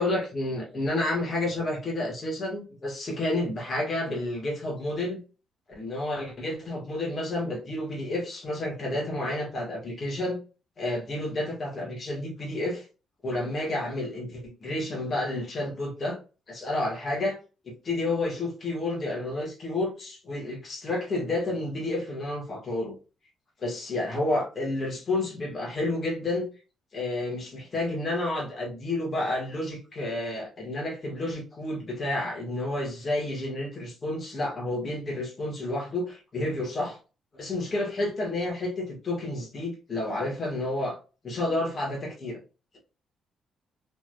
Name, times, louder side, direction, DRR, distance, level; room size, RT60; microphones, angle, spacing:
voice 1, 0.0-5.2 5.7-10.4 10.8-12.8 13.2-16.2 16.5-17.4 17.6-22.9 23.6-26.5 26.9-37.0 37.4-41.0 41.2-42.4, left 2 dB, 40° left, 1.5 m, -30 dB
3.4 x 3.0 x 2.2 m
cardioid pair, 90°, 0 cm